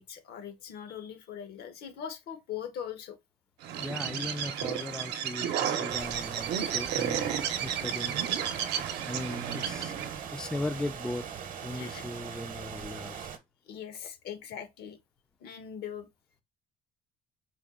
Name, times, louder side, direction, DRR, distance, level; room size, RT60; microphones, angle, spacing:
voice 1, 0.0-3.2 11.7-12.1 13.7-15.0 15.4-16.1, left 8 dB, 70° left, 0.9 m, -41 dB
Bird, 3.6-10.2, right 9 dB, 80° right, 0.7 m, -32 dB
voice 2, 3.8-7.3 7.6-8.2 9.1-9.9 10.3-11.3 11.6-13.3, left 2 dB, 5° left, 0.3 m, -38 dB
sound 1, 5.9-13.4, right 7 dB, 55° right, 0.8 m, -41 dB
4.4 x 2.3 x 3.5 m
cardioid pair, 110°, 17 cm